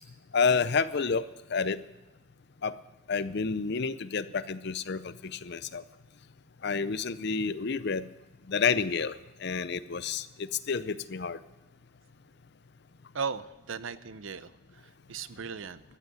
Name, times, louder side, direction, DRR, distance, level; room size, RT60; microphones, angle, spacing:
voice 1, 0.3-1.2 1.5-1.8 2.6-2.7 3.1-5.8 6.6-8.0 8.5-9.1 9.4-10.3 10.7-11.4, left 5 dB, 50° left, 14 dB, 0.6 m, -29 dB
voice 2, 13.1-14.5 15.1-15.8, right 5 dB, 65° right, 15 dB, 0.6 m, -36 dB
14.0 x 8.1 x 9.6 m, 1.0 s
head